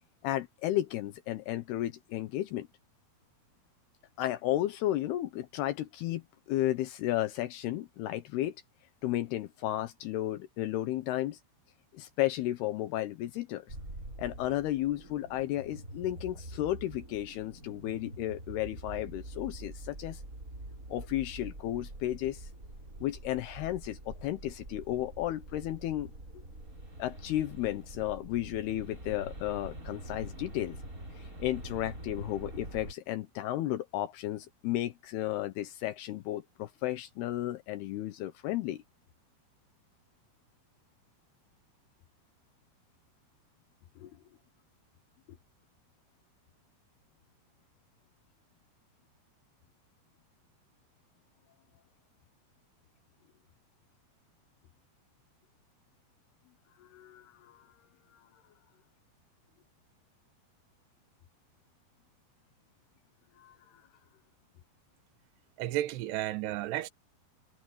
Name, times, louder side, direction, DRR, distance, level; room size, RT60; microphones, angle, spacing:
voice 1, 0.2-2.7 4.2-8.6 9.0-11.4 11.9-13.6 14.2-20.2 20.9-22.5 23.0-26.1 27.0-30.8 31.2-38.8 44.0-44.1 56.8-57.7 58.1-58.2 63.4-63.6, left 14 dB, 80° left, 2.9 m, -33 dB
sound 1, 13.7-32.9, right 1 dB, 20° right, 5.9 m, -45 dB
voice 2, 65.6-66.9, right 14 dB, 85° right, 3.2 m, -32 dB
omnidirectional pair, 4.7 m